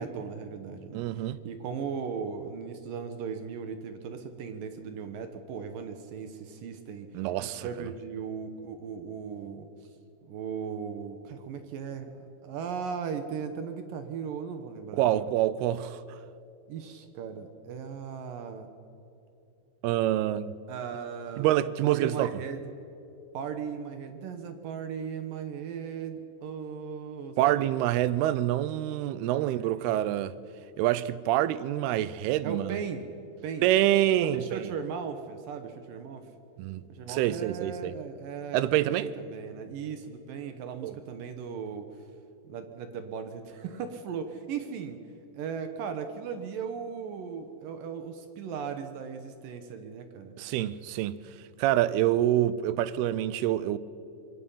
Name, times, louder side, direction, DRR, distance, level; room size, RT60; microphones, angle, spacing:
voice 1, 0.0-9.9 10.3-15.3 16.7-18.7 20.7-21.5 21.8-22.6 23.3-27.7 29.3-29.9 32.4-33.1 33.4-33.7 34.2-36.3 36.9-42.0 42.4-45.0 45.3-50.4, right 6 dB, 70° right, 2.6 m, -37 dB
voice 2, 0.9-1.4 7.1-7.7 14.9-16.0 19.8-20.5 21.4-22.3 27.4-30.3 30.8-32.8 33.6-34.7 36.6-37.9 38.5-39.1 40.8-40.9 50.4-51.2 51.6-53.8, right 13 dB, 85° right, 2.7 m, -26 dB
26.0 x 21.5 x 5.6 m
omnidirectional pair, 4.6 m